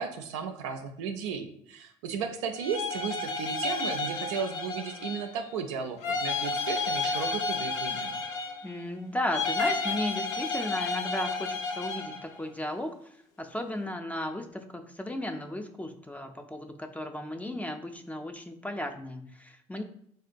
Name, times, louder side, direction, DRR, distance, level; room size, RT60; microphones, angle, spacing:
voice 1, 0.0-8.2, right 6 dB, 90° right, 6 dB, 0.4 m, -35 dB
sound 1, 2.5-5.4 6.0-8.8 9.3-12.3, left 3 dB, 80° left, 0.4 m, -31 dB
voice 2, 8.6-12.9 13.4-19.8, left 1 dB, 10° left, 6 dB, 0.4 m, -35 dB
3.6 x 2.2 x 2.5 m, 0.67 s
hypercardioid pair, 70°, 15 cm